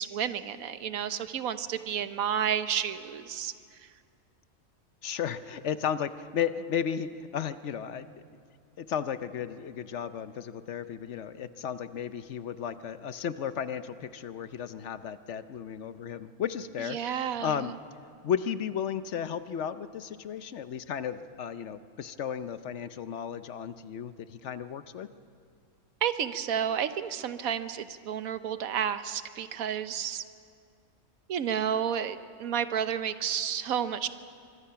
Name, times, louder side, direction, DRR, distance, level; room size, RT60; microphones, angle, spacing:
voice 1, 0.0-3.5 16.9-17.7 26.0-30.2 31.3-34.1, right 8 dB, 90° right, 12 dB, 1.3 m, -31 dB
voice 2, 5.0-8.1 8.8-17.7 18.2-25.1, left 8 dB, 65° left, 12 dB, 1.0 m, -34 dB
25.0 x 22.5 x 5.7 m, 2.3 s
omnidirectional pair, 1.4 m